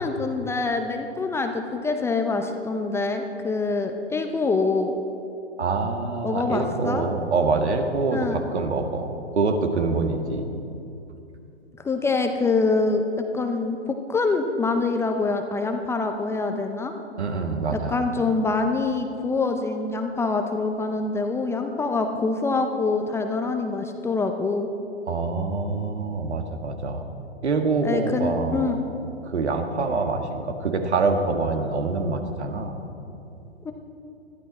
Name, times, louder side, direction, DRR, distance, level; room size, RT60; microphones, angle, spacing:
voice 1, 0.0-4.9 6.2-7.0 8.1-8.4 11.8-13.0 13.3-16.9 17.7-24.7 27.8-28.8 33.6-33.7, left 3 dB, 10° left, 5 dB, 0.6 m, -25 dB
voice 2, 5.6-10.5 17.2-18.0 25.1-27.0 27.4-28.7 29.2-32.8, right 3 dB, 75° right, 5 dB, 1.9 m, -25 dB
21.0 x 13.5 x 4.2 m, 2.8 s
hypercardioid pair, 120°, 34 cm